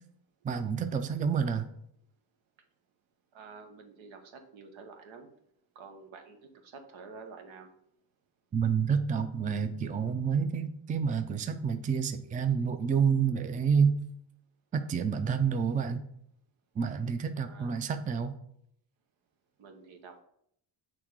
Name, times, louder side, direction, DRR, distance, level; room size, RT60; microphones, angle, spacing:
voice 1, 0.4-1.7 8.5-14.1 14.7-16.0 16.8-18.3, right 6 dB, 20° right, 8 dB, 0.4 m, -28 dB
voice 2, 3.3-5.3 5.7-7.7 17.4-17.7 19.6-20.2, right 4 dB, 80° right, 5 dB, 1.1 m, -49 dB
6.1 x 3.6 x 4.6 m, 0.70 s
cardioid pair, 110°, 46 cm